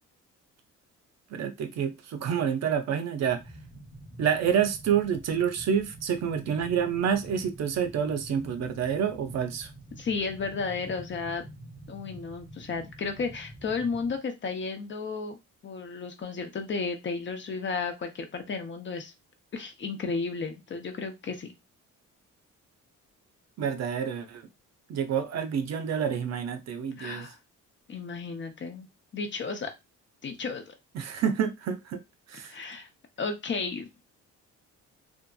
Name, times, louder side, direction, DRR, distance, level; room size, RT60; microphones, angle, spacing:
voice 1, 1.3-3.4 4.2-9.7 23.6-24.5 24.9-27.3 30.9-32.0 32.3-32.6, right 8 dB, 60° right, 0.6 m, -28 dB
sound 1, 3.2-14.2, right 1 dB, 5° left, 0.9 m, -47 dB
voice 2, 10.0-11.4 11.9-15.4 15.6-19.1 19.5-21.5 27.0-27.4 27.9-28.9 29.1-29.7 30.2-30.7 32.4-32.9 33.2-34.0, left 4 dB, 40° left, 0.6 m, -33 dB
2.7 x 2.4 x 2.2 m
cardioid pair, 90°, 30 cm